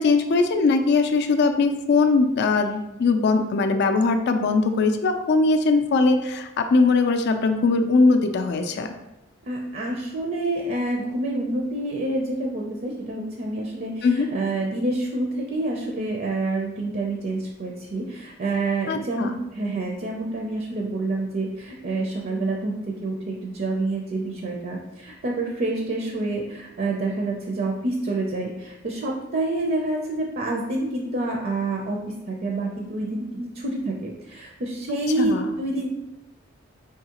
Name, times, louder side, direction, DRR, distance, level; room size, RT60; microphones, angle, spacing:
voice 1, 0.0-8.9 14.0-14.3 18.9-19.4 35.2-35.5, left 3 dB, 55° left, 6 dB, 0.4 m, -20 dB
voice 2, 9.4-35.9, right 2 dB, 45° right, 0 dB, 0.5 m, -28 dB
4.7 x 3.5 x 2.9 m, 0.94 s
head